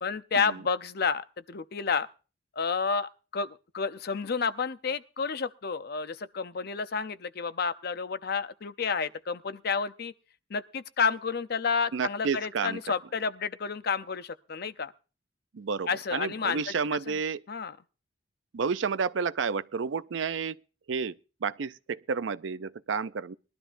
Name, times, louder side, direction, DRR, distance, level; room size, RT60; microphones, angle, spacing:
voice 1, 0.0-2.1 2.6-10.1 10.5-14.9 15.9-16.6 17.1-17.2 17.5-17.7, left 5 dB, 55° left, 0.6 m, -30 dB
voice 2, 11.9-12.8 15.5-17.4 18.5-20.6 20.9-23.3, right 5 dB, 75° right, 0.5 m, -31 dB
21.0 x 12.0 x 2.6 m
head